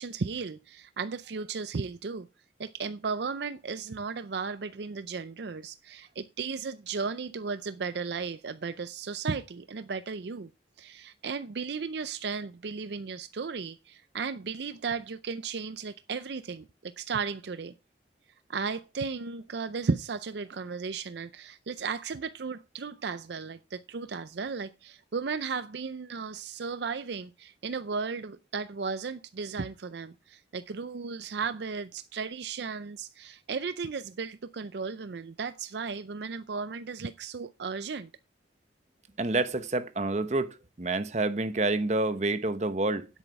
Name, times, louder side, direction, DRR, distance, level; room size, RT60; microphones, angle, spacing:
voice 1, 0.0-2.3 2.6-10.5 10.8-17.7 18.5-38.1, right 5 dB, 65° right, 0.5 m, -35 dB
voice 2, 39.2-40.5 40.8-43.1, right 2 dB, 40° right, 0.9 m, -28 dB
10.0 x 8.2 x 4.7 m
head